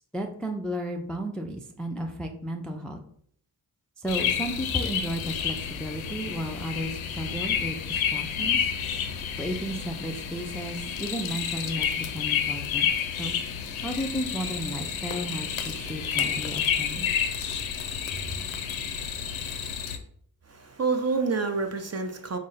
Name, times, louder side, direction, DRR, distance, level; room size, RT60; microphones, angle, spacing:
voice 1, 0.1-3.0 4.0-8.7 9.4-12.9 13.2-13.3 13.8-17.1, equal, ahead, 3 dB, 0.4 m, -33 dB
sound 1, 4.1-20.0, left 8 dB, 80° left, 0.6 m, -30 dB
voice 2, 20.5-22.4, right 4 dB, 35° right, 6 dB, 0.6 m, -28 dB
3.6 x 2.1 x 3.9 m, 0.65 s
supercardioid pair, 40°, 47 cm